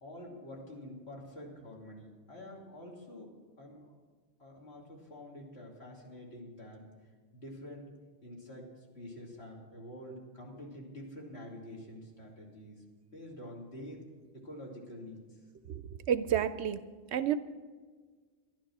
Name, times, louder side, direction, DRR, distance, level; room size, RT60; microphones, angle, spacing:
voice 1, 0.0-3.9 4.4-6.8 7.3-7.9 8.2-12.8 13.1-14.0 14.3-15.4, left 1 dB, 60° left, -2 dB, 3.0 m, -47 dB
voice 2, 15.7-16.8 17.1-17.4, right 9 dB, 70° right, 13 dB, 0.8 m, -30 dB
12.5 x 11.5 x 6.1 m, 1.5 s
omnidirectional pair, 1.3 m